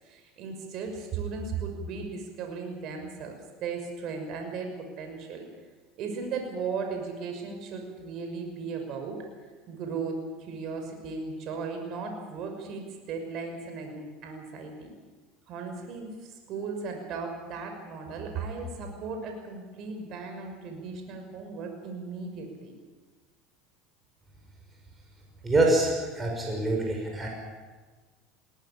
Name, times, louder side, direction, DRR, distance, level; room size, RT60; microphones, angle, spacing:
voice 1, 0.0-5.4 6.0-9.2 9.7-14.9 15.5-22.7, right 4 dB, 50° right, 4 dB, 6.0 m, -36 dB
voice 2, 25.4-27.3, right 2 dB, 20° right, 0 dB, 5.9 m, -25 dB
21.0 x 18.0 x 8.7 m, 1.4 s
supercardioid pair, 125°, 0 cm